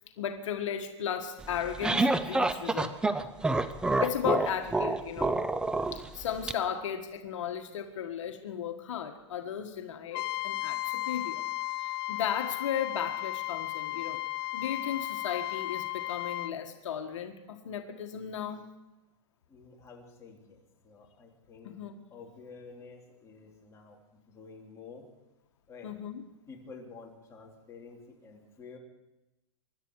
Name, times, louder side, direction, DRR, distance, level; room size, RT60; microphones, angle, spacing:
voice 1, 0.2-3.2 4.0-5.4 5.9-11.4 11.8-14.2 14.5-18.7 21.6-21.9 25.8-26.2, left 9 dB, 75° left, 5 dB, 1.6 m, -35 dB
sound 1, 1.4-6.5, right 2 dB, 5° right, 0.5 m, -28 dB
Trumpet, 10.1-16.5, left 19 dB, 50° left, 0.5 m, -34 dB
voice 2, 19.5-21.8 22.1-24.0 24.3-25.0 25.7-25.9 26.5-28.8, left 4 dB, 20° left, -2 dB, 3.3 m, -50 dB
24.5 x 12.0 x 4.8 m, 0.98 s
supercardioid pair, 145°, 16 cm